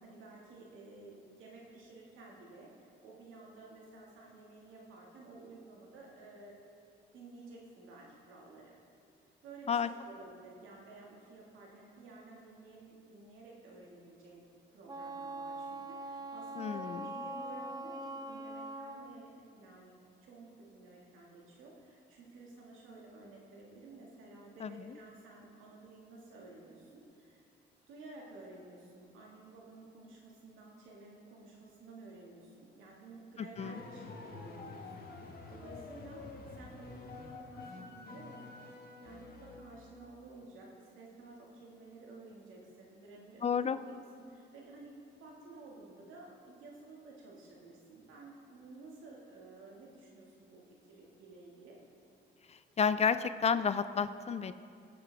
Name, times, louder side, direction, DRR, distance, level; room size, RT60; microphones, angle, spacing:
voice 1, 0.0-6.6 7.1-8.8 9.4-14.4 14.7-19.9 20.2-27.5 27.9-36.3 36.5-38.4 39.0-43.7 44.1-51.8, right 3 dB, 85° right, -2 dB, 2.1 m, -53 dB
Wind instrument woodwind instrument, 14.9-19.2, right 1 dB, 20° right, 0.6 m, -42 dB
voice 2, 16.6-17.1 24.6-24.9 33.4-33.8 43.4-43.8 52.5-54.5, left 6 dB, 35° left, 13 dB, 0.4 m, -31 dB
sound 1, 33.6-40.0, left 3 dB, 50° left, 1.4 m, -48 dB
16.5 x 6.9 x 3.5 m, 2.4 s
cardioid pair, 90°, 20 cm